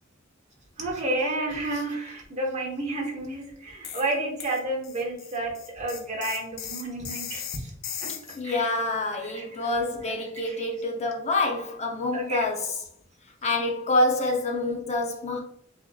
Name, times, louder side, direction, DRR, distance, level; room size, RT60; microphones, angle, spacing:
voice 1, 0.8-7.7 8.0-8.1 8.4-8.8 9.2-9.7 10.4-10.6 12.1-12.5, right 2 dB, 35° right, 1.2 m, -31 dB
sound 1, 3.8-4.1 4.4-8.4, left 8 dB, 90° left, 0.6 m, -37 dB
voice 2, 8.4-12.7 13.4-15.4, left 2 dB, 35° left, 0.7 m, -27 dB
7.4 x 2.9 x 2.3 m
head